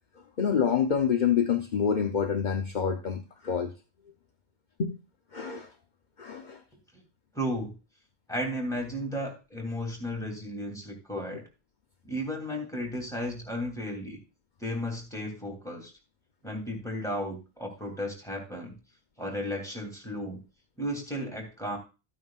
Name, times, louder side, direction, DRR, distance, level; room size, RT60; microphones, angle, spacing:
voice 1, 0.4-3.7 4.8-5.0 5.3-5.7 6.2-6.6, left 7 dB, 50° left, 4 dB, 0.9 m, -27 dB
voice 2, 7.3-7.7 8.3-11.4 12.0-14.2 14.6-15.9 16.4-18.7 19.2-20.4 20.8-21.8, equal, 5° left, 0 dB, 3.0 m, -34 dB
13.5 x 9.2 x 2.5 m, 0.30 s
omnidirectional pair, 1.1 m